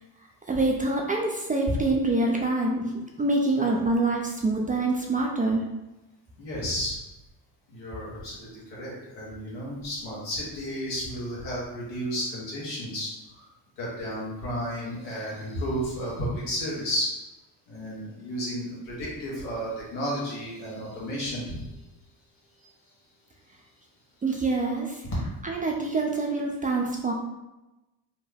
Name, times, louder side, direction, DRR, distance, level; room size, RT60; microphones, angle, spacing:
voice 1, 0.5-2.9 3.2-5.6 24.2-25.0 25.4-27.1, right 2 dB, 20° right, 0 dB, 0.3 m, -25 dB
voice 2, 6.4-7.0 7.7-13.1 13.8-17.1 17.7-21.7 22.6-22.7, equal, 85° left, -5 dB, 1.2 m, -32 dB
2.8 x 2.1 x 3.3 m, 0.99 s
hypercardioid pair, 55°, 49 cm